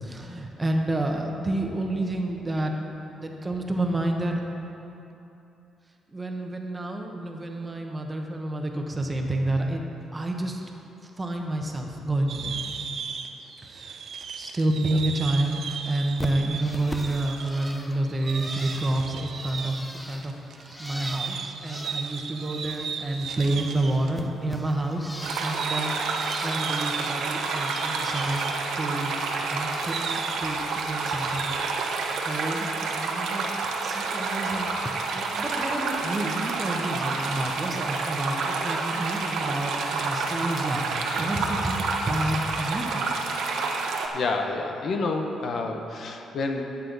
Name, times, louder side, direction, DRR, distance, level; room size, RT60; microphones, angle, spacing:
voice 1, 0.0-2.8 3.2-4.4 6.1-9.8 10.1-10.6 11.0-12.7 13.6-14.0 14.3-19.8 20.0-25.9 26.4-28.5 28.8-31.5 32.2-33.5 33.8-34.7 35.1-43.3, right 1 dB, 20° right, 2 dB, 1.2 m, -29 dB
sound 1, 12.3-24.2 24.4-24.5 25.2-31.9, right 6 dB, 60° right, 0.7 m, -37 dB
Bird, 16.2-23.0 23.2-25.7 26.1-26.9 27.3-28.6 28.9-30.2 30.5-31.5 31.9-32.3 33.6-33.7 34.7-34.9, left 1 dB, 10° left, 0.8 m, -42 dB
sound 2, 25.2-44.1, right 4 dB, 75° right, 1.1 m, -29 dB
voice 2, 44.1-46.6, left 3 dB, 55° left, 4 dB, 0.9 m, -28 dB
13.0 x 8.4 x 4.0 m, 2.9 s
cardioid pair, 90°, 0 cm